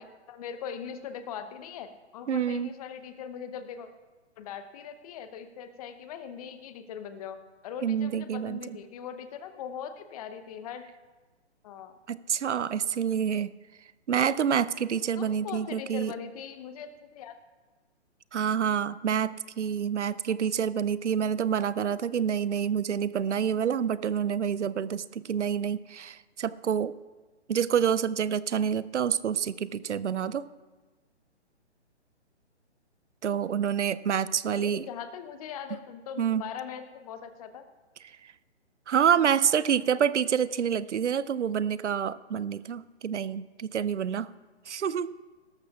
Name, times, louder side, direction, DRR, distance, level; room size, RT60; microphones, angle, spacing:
voice 1, 0.0-3.9 4.4-7.4 7.6-10.8 11.6-12.0 15.2-17.4 34.4-37.6, left 7 dB, 30° left, 9 dB, 0.9 m, -40 dB
voice 2, 2.3-2.7 7.8-8.8 12.1-13.5 14.1-16.1 18.3-26.9 27.5-30.5 33.2-34.8 36.2-36.4 38.9-44.3 44.7-45.1, right 8 dB, 80° right, 17 dB, 0.6 m, -27 dB
17.5 x 13.5 x 2.4 m, 1.2 s
figure-of-eight pair, 135°, 34 cm